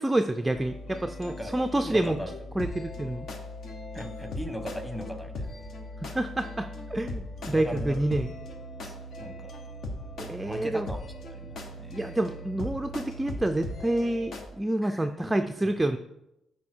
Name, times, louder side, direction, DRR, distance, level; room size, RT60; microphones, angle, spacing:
voice 1, 0.0-2.2 2.6-3.3 6.0-8.3 10.2-10.9 11.9-16.0, right 1 dB, 10° right, 7 dB, 0.4 m, -28 dB
sound 1, 0.5-14.5, left 1 dB, 65° left, 1.2 m, -39 dB
voice 2, 1.4-2.3 3.9-5.5 7.4-8.0 8.8-8.9 9.2-9.5 10.4-11.0 11.3-12.1 14.8-15.1 15.4-15.7, equal, 5° left, 7 dB, 1.2 m, -39 dB
8.3 x 4.7 x 4.5 m, 0.87 s
cardioid pair, 90°, 0 cm